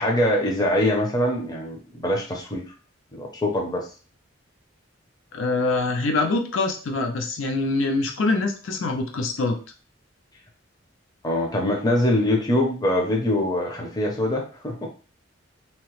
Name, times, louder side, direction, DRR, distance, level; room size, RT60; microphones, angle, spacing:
voice 1, 0.0-2.6 3.1-3.8 11.2-14.9, left 1 dB, 20° left, 0 dB, 0.5 m, -23 dB
voice 2, 5.3-9.6, left 3 dB, 80° left, 5 dB, 0.5 m, -24 dB
2.8 x 2.0 x 3.0 m, 0.37 s
head